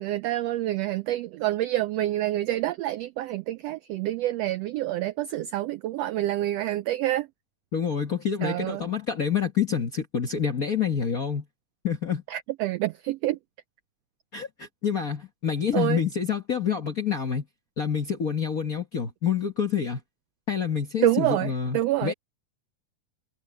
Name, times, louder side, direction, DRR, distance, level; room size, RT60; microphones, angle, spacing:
voice 1, 0.0-7.3 8.4-8.8 12.3-13.4 15.7-16.0 21.0-22.1, right 15 dB, 90° right, 1.4 m, -27 dB
voice 2, 7.7-11.4 11.8-12.2 14.3-17.4 17.8-20.0 20.5-22.1, left 7 dB, 50° left, 1.0 m, -27 dB
omnidirectional pair, 3.4 m